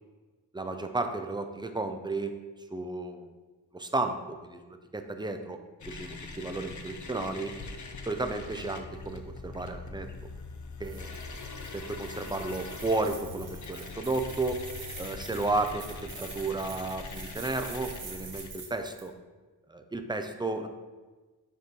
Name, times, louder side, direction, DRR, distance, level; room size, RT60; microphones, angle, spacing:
voice 1, 0.5-2.4 2.7-3.3 3.7-5.6 5.9-7.5 8.1-10.1 10.8-11.2 11.7-14.6 15.0-15.8 16.2-19.1 19.7-20.7, right 2 dB, 10° right, 6 dB, 0.5 m, -33 dB
sound 1, 5.8-18.5, left 3 dB, 40° left, 0.7 m, -42 dB
sound 2, 10.8-19.1, right 5 dB, 85° right, 1.1 m, -46 dB
6.7 x 3.0 x 5.2 m, 1.3 s
wide cardioid pair, 80°, 45 cm